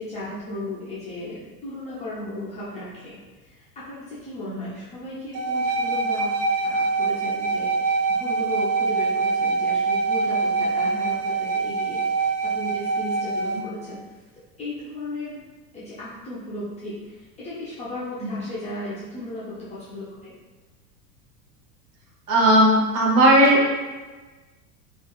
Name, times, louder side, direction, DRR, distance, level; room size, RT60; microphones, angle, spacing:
voice 1, 0.0-6.3 6.6-14.0 14.6-15.4 15.7-20.3, left 1 dB, 15° left, -10 dB, 0.3 m, -36 dB
sound 1, 5.3-13.6, right 4 dB, 40° right, 0.6 m, -24 dB
voice 2, 22.3-23.7, right 1 dB, 70° right, -3 dB, 0.9 m, -17 dB
2.6 x 2.3 x 2.2 m, 1.3 s
hypercardioid pair, 90°, 48 cm